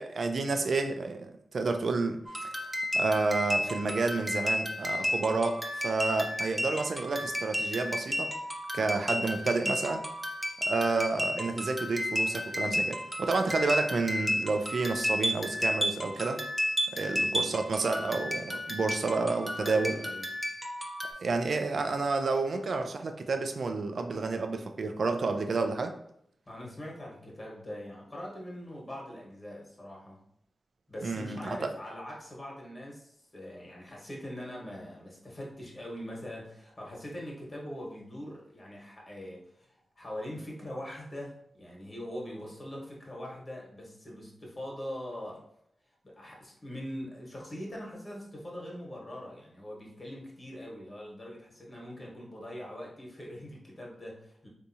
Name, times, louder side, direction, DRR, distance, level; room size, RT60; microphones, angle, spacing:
voice 1, 0.0-2.5 2.9-8.3 8.7-10.0 10.6-16.4 16.9-20.0 21.2-25.9 31.0-31.7, right 3 dB, 65° right, 6 dB, 0.4 m, -30 dB
sound 1, 2.3-21.1, equal, 5° right, 0.6 m, -32 dB
voice 2, 17.0-17.3 19.6-20.3 26.5-30.2 30.9-45.4 45.9-54.5, left 1 dB, 40° left, -3 dB, 1.3 m, -42 dB
3.5 x 2.7 x 2.7 m, 0.71 s
cardioid pair, 50°, 0 cm